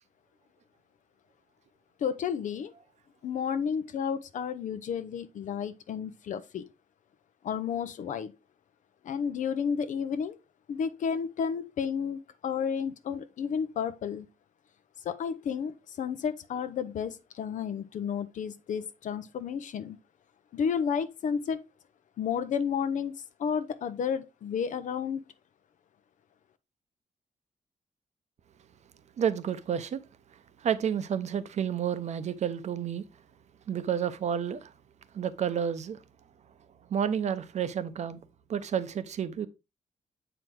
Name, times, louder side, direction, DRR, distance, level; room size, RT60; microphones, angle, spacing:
voice 1, 2.0-2.7 3.2-6.6 7.4-8.3 9.0-10.4 10.7-14.3 15.0-15.7 16.0-20.0 20.5-21.6 22.2-23.1 23.4-25.2, left 7 dB, 70° left, 0.6 m, -31 dB
voice 2, 29.2-30.0 30.6-33.0 33.7-34.6 35.1-36.0 36.9-38.2 38.5-39.5, right 8 dB, 60° right, 0.7 m, -30 dB
7.7 x 4.6 x 3.7 m
wide cardioid pair, 145°, 13 cm